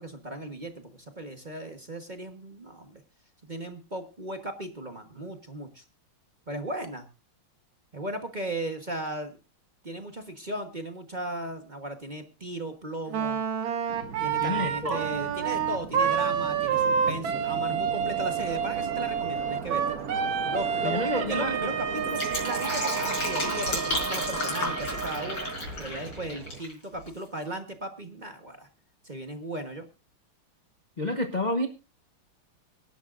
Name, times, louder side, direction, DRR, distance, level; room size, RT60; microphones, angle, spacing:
voice 1, 0.0-3.0 3.5-5.8 6.5-7.1 7.9-9.4 9.8-13.4 14.2-20.0 20.5-25.5 25.8-28.7 29.0-29.9, right 1 dB, 25° right, 5 dB, 1.1 m, -36 dB
Wind instrument woodwind instrument, 13.1-25.6, right 7 dB, 70° right, 1.8 m, -29 dB
sound 1, 13.9-26.6, right 6 dB, 50° right, 1.3 m, -39 dB
voice 2, 14.4-15.0 20.8-21.5 31.0-31.7, left 1 dB, 35° left, 7 dB, 0.7 m, -29 dB
Fill (with liquid), 21.9-26.7 27.0-27.1, left 2 dB, 65° left, 6.2 m, -32 dB
25.0 x 11.0 x 2.6 m, 0.30 s
omnidirectional pair, 2.3 m